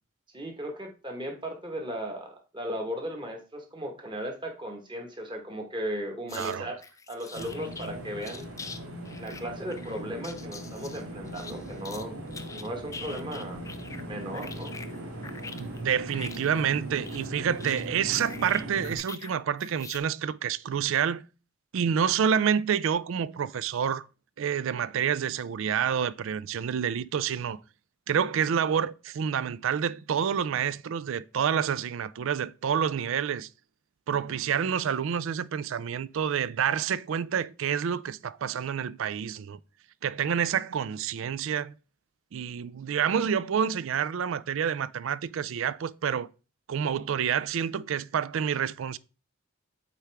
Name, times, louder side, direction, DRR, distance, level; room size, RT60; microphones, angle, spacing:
voice 1, 0.3-6.8 7.1-8.5 9.2-12.2 12.5-13.6 14.1-14.7, equal, 20° right, 1.3 m, -36 dB
sound 1, 6.3-6.6 6.8-7.9 8.2-8.8 9.1-12.0 12.3-14.1 14.3-19.3 19.6-20.0, left 4 dB, 15° left, 0.4 m, -44 dB
voice 2, 6.3-6.7 15.6-21.2 21.7-24.1 24.4-27.6 28.1-33.5 34.1-39.6 40.0-41.7 42.3-46.3 46.7-49.0, right 8 dB, 65° right, 0.3 m, -28 dB
sound 2, 7.3-19.0, right 1 dB, 90° right, 2.8 m, -39 dB
8.3 x 4.5 x 3.4 m
head